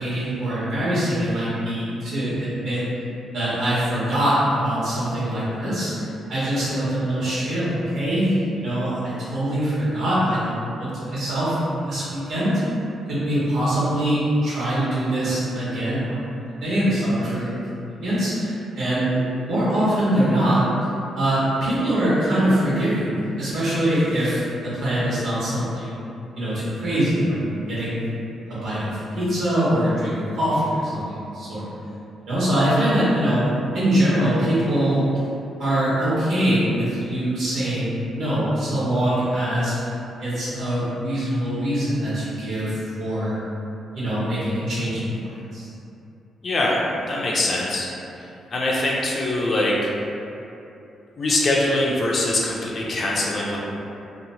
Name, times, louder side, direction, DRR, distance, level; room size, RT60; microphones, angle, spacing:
voice 1, 0.0-2.8 3.3-12.5 13.1-19.1 19.4-20.6 21.1-26.0 26.4-27.4 27.7-28.0 28.5-31.6 32.3-33.5 33.7-35.0 35.6-39.9 40.2-43.3 43.9-45.7, right 1 dB, 65° right, -10 dB, 1.1 m, -23 dB
voice 2, 46.4-46.8 47.1-47.9 48.2-49.9 51.2-53.6, left 1 dB, 40° left, -4 dB, 0.4 m, -23 dB
2.9 x 2.0 x 2.7 m, 2.7 s
cardioid pair, 135°, 0 cm